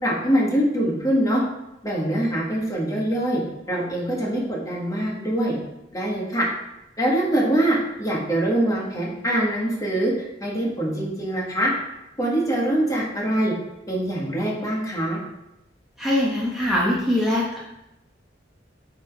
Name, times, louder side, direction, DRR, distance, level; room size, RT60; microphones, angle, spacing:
voice 1, 0.0-1.4 1.8-3.4 3.7-5.5 5.9-6.4 7.0-11.7 12.2-13.5 13.9-15.2, right 1 dB, 20° left, -4 dB, 1.4 m, -23 dB
voice 2, 16.0-17.6, left 1 dB, ahead, -7 dB, 0.9 m, -22 dB
8.6 x 3.8 x 3.5 m, 0.91 s
head